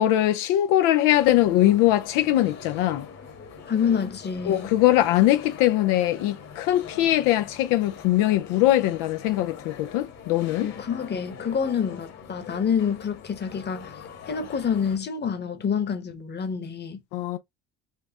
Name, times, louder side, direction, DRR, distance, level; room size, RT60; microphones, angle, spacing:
voice 1, 0.0-3.1 4.5-10.7 17.1-17.4, left 14 dB, 85° left, 0.5 m, -21 dB
sound 1, 1.1-15.0, left 6 dB, 55° left, 1.4 m, -43 dB
voice 2, 3.7-4.7 10.6-14.0 14.3-17.0, left 7 dB, 35° left, 1.0 m, -27 dB
4.4 x 2.4 x 2.8 m
supercardioid pair, 90°, 32 cm